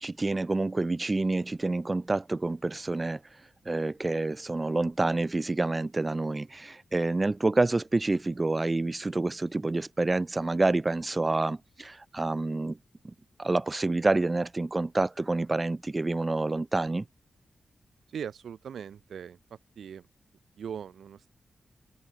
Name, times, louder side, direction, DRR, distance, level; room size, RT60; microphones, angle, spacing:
voice 1, 0.0-3.2 3.7-12.8 13.4-17.0, right 2 dB, 20° right, 0.5 m, -28 dB
voice 2, 18.1-19.4 19.8-20.1 20.6-21.3, right 8 dB, 85° right, 2.2 m, -39 dB
wide cardioid pair, 170°, 0 cm